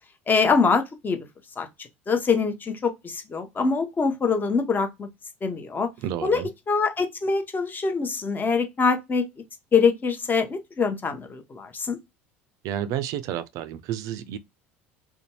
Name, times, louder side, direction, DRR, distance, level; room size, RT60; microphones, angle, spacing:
voice 1, 0.3-1.2 1.6-1.7 2.1-5.1 5.4-5.9 6.2-6.4 6.7-9.2 9.7-12.0, left 5 dB, 25° left, 0.8 m, -24 dB
voice 2, 6.0-6.5 12.6-14.4, right 10 dB, 55° right, 0.4 m, -30 dB
2.6 x 2.2 x 2.9 m
hypercardioid pair, 75°, 7 cm